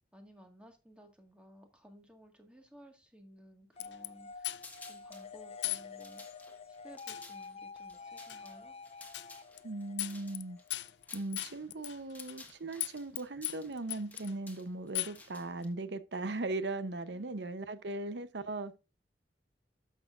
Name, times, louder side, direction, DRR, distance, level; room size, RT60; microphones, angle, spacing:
voice 1, 0.1-4.6 4.8-6.2 6.8-8.8 17.1-17.4, equal, 5° right, 1.7 m, -57 dB
sound 1, 3.8-4.1 4.4-4.9 5.6-5.9 6.2-6.3 7.1-7.3 8.3-8.4 9.1-9.3 9.6-9.7 10.0-10.4 10.7-12.5 12.8-13.2 13.4-14.3 15.0-15.2, left 16 dB, 85° left, 0.5 m, -37 dB
sound 2, 3.8-11.3, left 4 dB, 35° left, 0.5 m, -49 dB
sound 3, 4.6-5.3 5.8-11.6 11.9-15.7, left 3 dB, 10° left, 1.6 m, -55 dB
voice 2, 9.6-10.6 11.1-18.8, right 2 dB, 80° right, 0.8 m, -38 dB
12.0 x 6.8 x 2.5 m
head